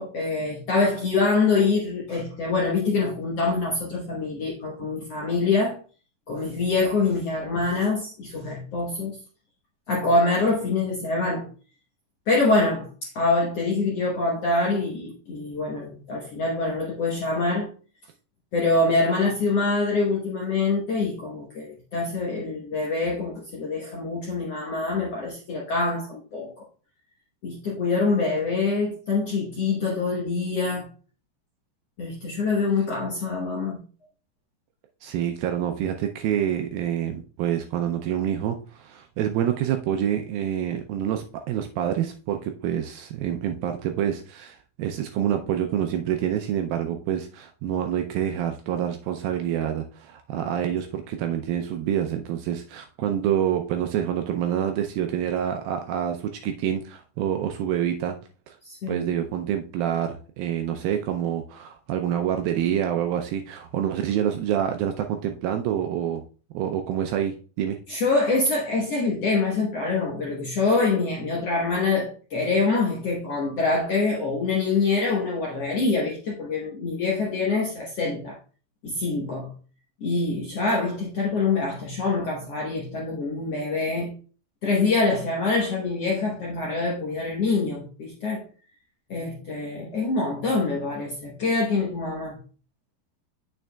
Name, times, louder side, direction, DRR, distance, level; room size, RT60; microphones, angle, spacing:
voice 1, 0.0-5.8 6.3-9.2 9.9-11.5 12.3-17.7 18.5-26.6 27.4-30.9 32.0-33.8 58.6-59.1 67.9-78.4 78.8-79.5 80.0-84.1 84.6-88.4 89.1-92.4, left 3 dB, 75° left, 1.4 m, -25 dB
voice 2, 35.0-58.2 58.5-58.6 58.9-66.2 66.5-67.8, right 10 dB, 80° right, 2.2 m, -27 dB
8.8 x 6.7 x 2.2 m
omnidirectional pair, 4.4 m